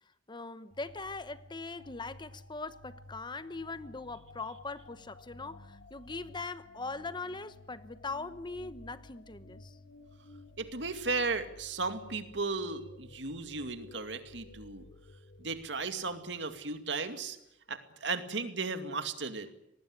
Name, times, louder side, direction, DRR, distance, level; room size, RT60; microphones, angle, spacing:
voice 1, 0.3-9.8, left 3 dB, 25° left, 1.0 m, -41 dB
sound 1, 0.7-17.1, left 2 dB, 90° left, 2.7 m, -54 dB
voice 2, 10.6-14.8 15.4-17.4 17.7-19.5, right 4 dB, 70° right, 2.3 m, -35 dB
25.5 x 19.5 x 9.7 m
head